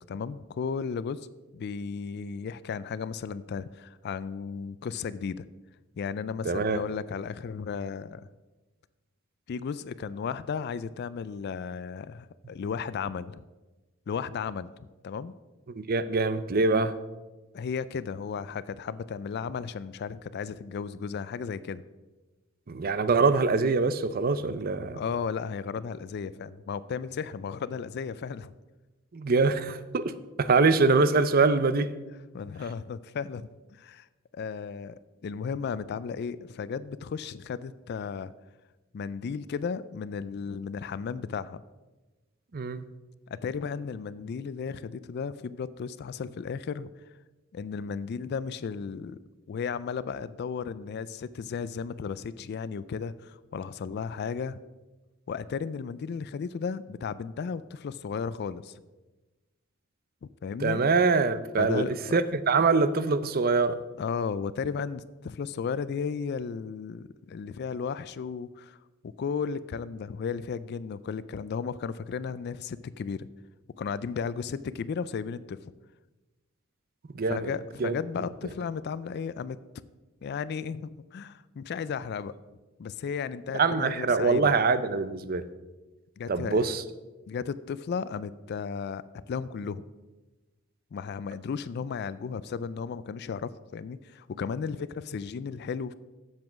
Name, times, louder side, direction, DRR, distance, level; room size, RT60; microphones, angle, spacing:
voice 1, 0.1-1.2 1.5-5.5 6.0-8.3 9.5-13.4 14.1-14.7 15.0-15.3 17.5-21.8 24.9-28.5 32.3-34.1 34.3-35.0 35.2-38.3 38.9-41.6 43.3-46.9 47.5-49.2 49.5-54.6 55.3-58.7 60.2-60.8 61.6-62.2 64.0-68.8 69.2-73.3 73.8-75.6 77.3-79.6 80.2-82.3 82.8-84.5 86.2-86.7 87.3-89.8 90.9-95.9, left 6 dB, 50° left, 17 dB, 0.3 m, -34 dB
voice 2, 6.4-6.8 15.7-16.9 22.7-25.0 29.1-31.9 42.5-42.9 60.6-63.8 77.1-77.5 77.8-77.9 83.5-85.4 86.3-86.8, right 4 dB, 45° right, 13 dB, 0.5 m, -24 dB
7.6 x 7.5 x 6.2 m, 1.2 s
head